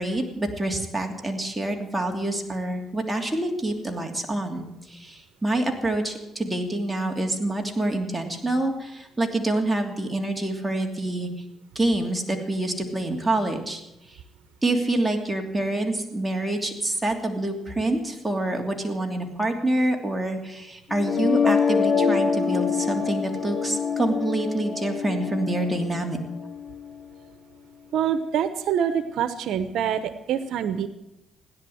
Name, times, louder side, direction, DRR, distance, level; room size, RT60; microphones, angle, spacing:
voice 1, 0.0-11.3 11.7-13.8 14.6-26.2, right 1 dB, 10° right, 2 dB, 2.9 m, -27 dB
sound 1, 20.9-26.9, left 6 dB, 35° left, 2.0 m, -25 dB
voice 2, 27.9-30.9, right 8 dB, 80° right, 12 dB, 1.0 m, -25 dB
16.5 x 10.5 x 7.9 m, 0.90 s
cardioid pair, 90°, 0 cm